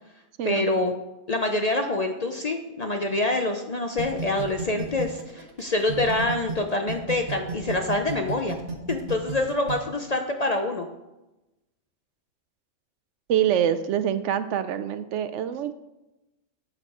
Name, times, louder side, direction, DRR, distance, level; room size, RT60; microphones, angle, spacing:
voice 1, 0.4-0.9 1.3-8.6 8.9-10.9, left 2 dB, 45° left, 4 dB, 0.5 m, -26 dB
sound 1, 4.0-6.6 6.9-9.7, right 6 dB, 50° right, 1.1 m, -32 dB
voice 2, 13.3-15.7, right 10 dB, 75° right, 12 dB, 0.9 m, -25 dB
8.8 x 6.3 x 4.8 m, 0.99 s
omnidirectional pair, 1.3 m